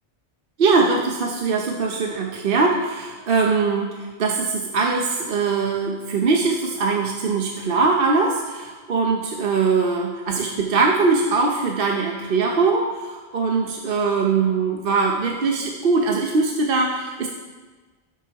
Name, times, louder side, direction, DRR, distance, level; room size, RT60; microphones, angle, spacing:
voice 1, 0.6-17.3, right 4 dB, 55° right, 1 dB, 0.9 m, -21 dB
12.0 x 8.1 x 3.5 m, 1.3 s
omnidirectional pair, 1.2 m